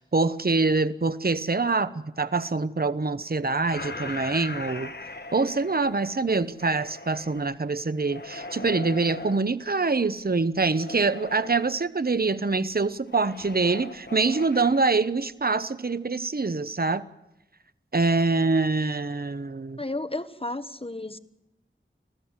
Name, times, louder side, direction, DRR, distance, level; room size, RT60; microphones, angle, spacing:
voice 1, 0.0-4.9 5.3-17.0 17.9-19.8, right 3 dB, 50° right, 1.0 m, -25 dB
sound 1, 3.6-7.4 8.0-9.4 10.7-11.7 13.1-14.8, left 2 dB, 55° left, 1.5 m, -39 dB
voice 2, 19.8-21.2, left 2 dB, 30° left, 1.2 m, -32 dB
27.0 x 15.5 x 7.4 m
wide cardioid pair, 40°, 20 cm